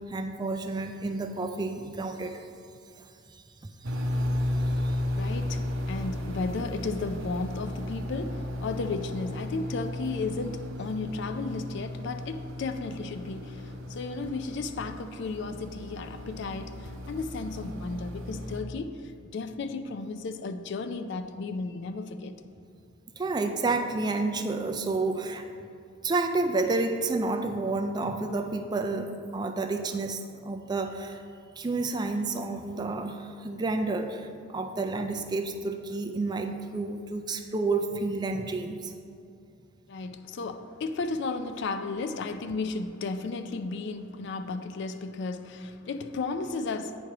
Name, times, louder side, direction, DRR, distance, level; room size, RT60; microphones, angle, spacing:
voice 1, 0.1-2.3 3.0-5.0 23.2-25.5 26.0-31.2 31.6-38.9, right 3 dB, 20° right, 6 dB, 0.3 m, -30 dB
sound 1, 3.8-18.6, left 1 dB, 70° right, 0.7 m, -34 dB
voice 2, 5.1-22.4 39.9-47.0, left 3 dB, 60° left, 9 dB, 0.4 m, -34 dB
8.7 x 3.2 x 5.7 m, 2.4 s
head